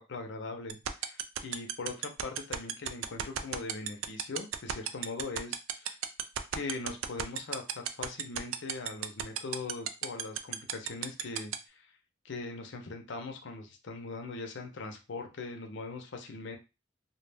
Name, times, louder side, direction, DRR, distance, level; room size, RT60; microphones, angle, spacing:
voice 1, 0.0-6.0 6.5-11.9 12.2-16.6, left 3 dB, 60° left, 4 dB, 0.5 m, -41 dB
sound 1, 0.7-11.5, right 11 dB, 75° right, 0.3 m, -31 dB
2.2 x 2.1 x 3.3 m, 0.28 s
head